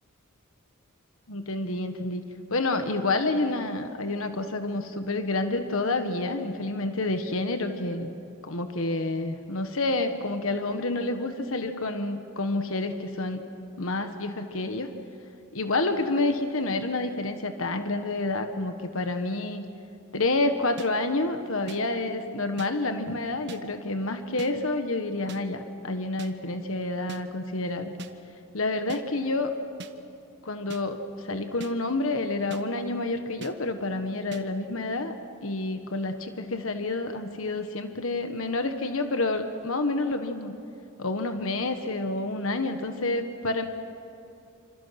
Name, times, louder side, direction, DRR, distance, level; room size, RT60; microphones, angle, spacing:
voice 1, 1.3-2.2 2.5-8.1 8.4-13.4 13.8-14.9 15.5-19.6 20.1-27.9 28.5-29.5 30.4-35.1 35.4-40.5 41.0-43.7, left 2 dB, 65° left, 7 dB, 1.4 m, -29 dB
sound 1, 20.8-20.9 21.7-21.8 22.6-22.7 23.5-23.6 24.4-24.5 25.3-25.4 26.2-26.3 27.1-27.2 28.0-28.1 28.9-29.0 29.8-29.9 30.7-30.8 31.6-31.7 32.5-32.6 33.4-33.5 34.3-34.4, right 3 dB, 55° right, 1.2 m, -41 dB
27.0 x 27.0 x 6.0 m, 2.7 s
head